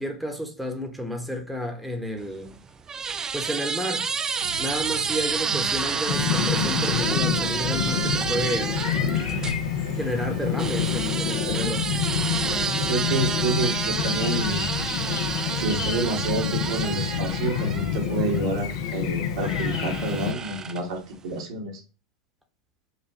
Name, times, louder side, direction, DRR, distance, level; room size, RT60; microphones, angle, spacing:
voice 1, 0.0-2.6 3.3-4.1 4.6-8.8 10.0-11.9, equal, ahead, 0.8 m, -31 dB
sound 1, 2.2-9.6 10.6-18.5 19.4-21.0, right 6 dB, 20° right, 0.3 m, -29 dB
sound 2, 4.4-17.8, right 2 dB, 85° right, 0.9 m, -39 dB
Chirp tweet, 6.1-20.3, left 9 dB, 60° left, 0.5 m, -28 dB
voice 2, 12.8-14.7 15.5-21.8, right 3 dB, 70° right, 1.2 m, -29 dB
5.3 x 2.2 x 2.7 m
hypercardioid pair, 90°, 3 cm